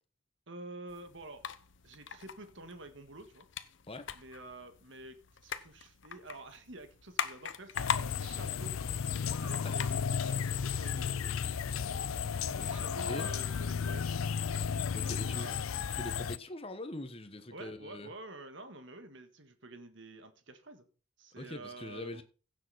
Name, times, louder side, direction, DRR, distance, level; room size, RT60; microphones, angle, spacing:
voice 1, 0.5-1.5 1.8-3.5 4.1-8.8 9.4-11.3 12.4-14.0 15.0-15.9 17.5-20.9 21.2-22.2, right 2 dB, 60° right, 1.9 m, -49 dB
sound 1, 0.9-10.9, left 6 dB, 65° left, 0.9 m, -42 dB
sound 2, 7.7-16.4, left 6 dB, 85° left, 0.5 m, -34 dB
voice 2, 14.9-15.6 16.0-18.1 21.4-22.2, left 1 dB, 30° left, 1.3 m, -43 dB
16.0 x 7.1 x 4.2 m
head